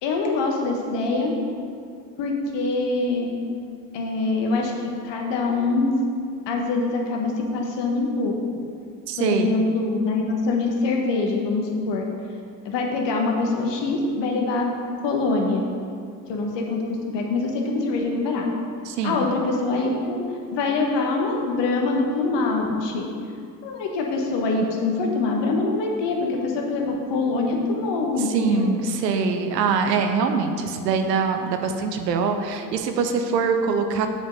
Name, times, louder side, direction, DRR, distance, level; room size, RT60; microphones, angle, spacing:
voice 1, 0.0-1.3 2.2-3.3 3.9-4.7 5.0-6.0 6.5-8.3 9.2-12.0 12.6-14.7 15.0-15.7 16.3-18.5 19.0-20.2 20.5-23.1 23.6-28.7, left 3 dB, 60° left, 1 dB, 1.4 m, -24 dB
voice 2, 9.1-9.5 18.8-19.3 28.2-34.1, right 5 dB, 85° right, 6 dB, 0.6 m, -23 dB
7.8 x 5.2 x 5.3 m, 2.3 s
hypercardioid pair, 45°, 48 cm